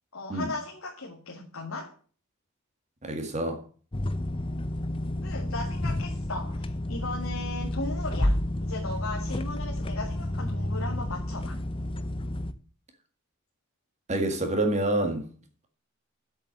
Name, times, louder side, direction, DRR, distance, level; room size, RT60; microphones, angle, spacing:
voice 1, 0.1-1.9 5.2-11.6, left 2 dB, 85° left, 2.3 m, -37 dB
voice 2, 3.0-3.6 14.1-15.2, right 1 dB, 35° right, 2.0 m, -27 dB
sound 1, 3.9-12.5, left 1 dB, 25° left, 0.7 m, -30 dB
7.9 x 7.6 x 7.6 m
head